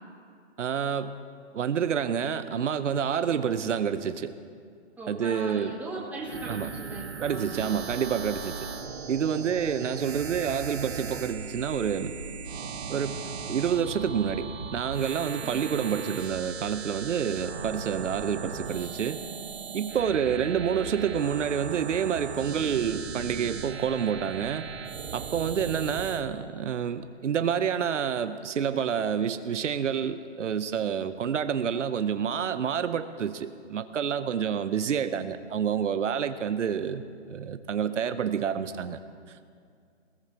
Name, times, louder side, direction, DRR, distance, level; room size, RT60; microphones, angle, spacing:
voice 1, 0.6-1.2 1.5-4.3 5.1-5.7 6.5-6.7 7.2-8.7 9.1-12.2 12.9-19.2 19.7-24.7 25.1-37.0 37.3-39.0, right 7 dB, 90° right, 11 dB, 0.8 m, -28 dB
voice 2, 5.0-7.7 15.4-15.7, right 2 dB, 5° right, -5 dB, 2.1 m, -39 dB
sound 1, 6.2-26.2, right 6 dB, 60° right, 1.4 m, -38 dB
20.0 x 17.0 x 2.9 m, 2.3 s
hypercardioid pair, 150°, 35 cm